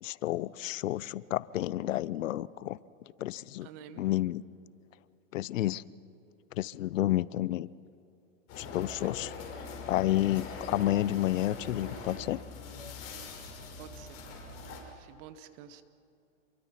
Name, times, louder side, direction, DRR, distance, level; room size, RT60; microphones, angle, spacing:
voice 1, 0.0-2.8 3.2-3.7 4.0-4.4 5.3-5.8 6.5-7.7 8.6-9.3 9.9-12.4, left 14 dB, 75° left, 20 dB, 0.7 m, -30 dB
voice 2, 3.6-4.0 9.0-9.1 13.8-14.5 14.9-15.8, right 9 dB, 45° right, 11 dB, 1.6 m, -50 dB
sound 1, 8.5-14.8, left 4 dB, 35° left, 6.1 m, -42 dB
28.0 x 23.0 x 5.9 m, 2.8 s
hypercardioid pair, 125°, 39 cm